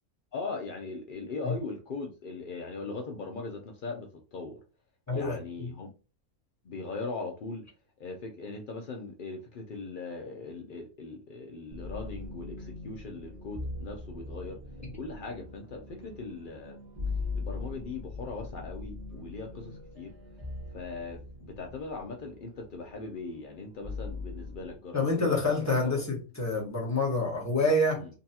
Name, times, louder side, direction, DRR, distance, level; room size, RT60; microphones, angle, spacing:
voice 1, 0.3-4.6 5.1-5.9 6.6-7.6 8.0-14.6 15.0-16.8 17.3-20.1 20.7-26.0 27.9-28.1, left 3 dB, 80° left, 0.4 m, -40 dB
voice 2, 5.1-5.7 24.9-28.0, left 2 dB, 15° left, 1.0 m, -27 dB
sound 1, 11.7-24.7, left 3 dB, 25° right, 1.0 m, -41 dB
3.8 x 2.3 x 2.7 m
omnidirectional pair, 1.6 m